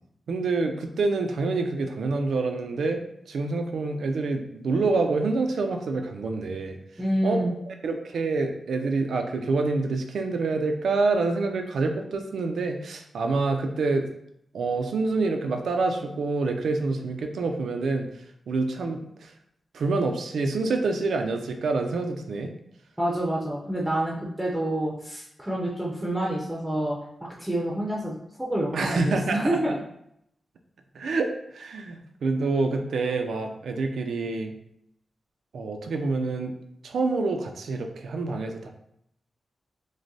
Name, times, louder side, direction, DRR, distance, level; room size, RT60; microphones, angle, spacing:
voice 1, 0.3-6.8 7.2-14.1 14.5-18.1 18.5-19.3 19.7-22.5 28.7-29.7 30.9-34.5 35.5-36.5 36.8-38.7, right 3 dB, 85° right, 5 dB, 0.5 m, -27 dB
voice 2, 7.0-7.5 23.0-27.0 27.4-29.8, right 1 dB, 10° right, -4 dB, 0.6 m, -28 dB
6.2 x 2.2 x 2.7 m, 0.75 s
wide cardioid pair, 145°, 0 cm